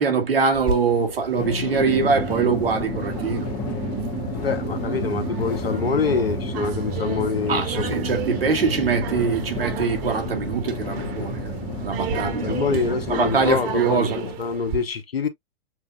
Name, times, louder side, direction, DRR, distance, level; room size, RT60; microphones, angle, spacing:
voice 1, 0.0-3.5 7.5-11.5 11.8-14.2, right 5 dB, 80° right, 2.0 m, -23 dB
sound 1, 0.5-14.8, right 6 dB, 45° right, 1.3 m, -35 dB
Drum, 1.4-14.3, left 7 dB, 40° left, 1.3 m, -33 dB
sound 2, 1.7-13.6, right 7 dB, 15° right, 0.6 m, -33 dB
voice 2, 4.4-8.0 12.1-15.3, left 5 dB, 90° left, 1.1 m, -26 dB
7.2 x 2.4 x 2.3 m
hypercardioid pair, 110°, 29 cm